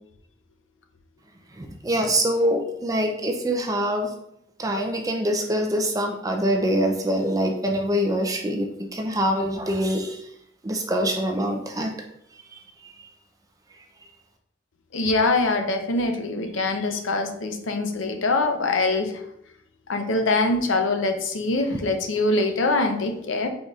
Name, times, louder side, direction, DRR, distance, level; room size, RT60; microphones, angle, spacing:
voice 1, 1.6-4.1 4.6-8.7 8.9-10.2 10.6-11.9 12.8-13.1, equal, 15° right, 3 dB, 0.5 m, -24 dB
voice 2, 14.9-19.2 19.9-23.5, left 2 dB, 80° left, 5 dB, 0.6 m, -23 dB
4.9 x 4.0 x 2.4 m, 0.74 s
head